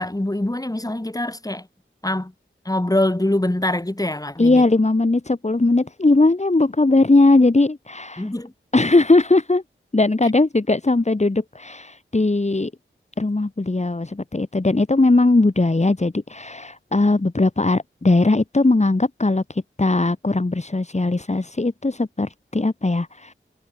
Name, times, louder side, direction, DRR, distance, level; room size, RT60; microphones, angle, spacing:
voice 1, 0.0-1.7 2.0-2.3 2.6-4.6 8.2-8.5, left 1 dB, 15° left, 4.6 m, -24 dB
voice 2, 4.4-8.3 8.7-9.6 9.9-12.7 13.2-23.3, left 2 dB, 35° left, 2.8 m, -19 dB
wide cardioid pair, 70°, 21 cm